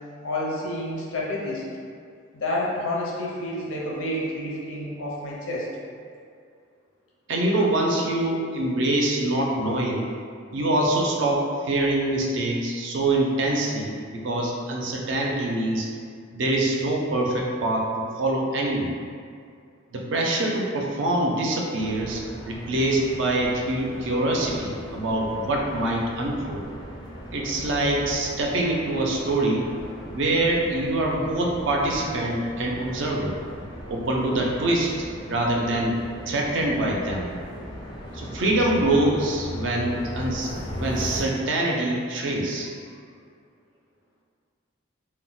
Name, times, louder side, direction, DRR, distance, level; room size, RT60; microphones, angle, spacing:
voice 1, 0.2-1.6 2.3-5.7, left 1 dB, 75° left, -4 dB, 0.6 m, -29 dB
voice 2, 7.3-10.1 10.5-15.9 16.3-18.9 19.9-26.6 27.3-29.7 30.1-33.4 33.9-35.9 36.3-37.3 38.1-42.7, right 1 dB, 65° right, -1 dB, 0.4 m, -25 dB
sound 1, 21.8-41.2, equal, 20° left, 0.3 m, -38 dB
2.2 x 2.0 x 3.7 m, 2.2 s
head